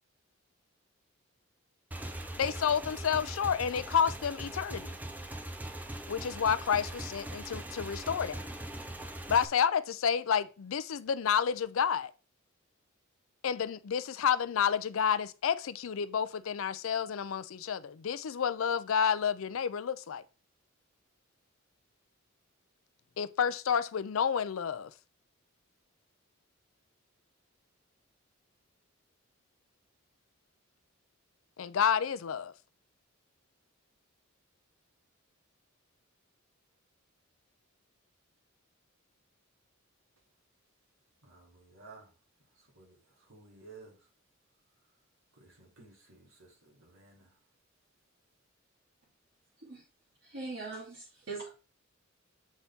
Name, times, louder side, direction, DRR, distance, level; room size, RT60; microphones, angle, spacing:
Motorcycle / Engine, 1.9-9.5, right 1 dB, 10° right, 0.5 m, -41 dB
voice 1, 2.4-5.0 6.1-8.4 9.3-12.1 13.4-20.2 23.2-24.9 31.6-32.5, left 7 dB, 80° left, 0.4 m, -30 dB
voice 2, 41.2-42.1 42.8-44.0 45.4-47.3, right 3 dB, 85° right, 2.7 m, -55 dB
voice 3, 50.2-51.5, right 3 dB, 60° right, 2.7 m, -41 dB
7.2 x 4.0 x 3.6 m
head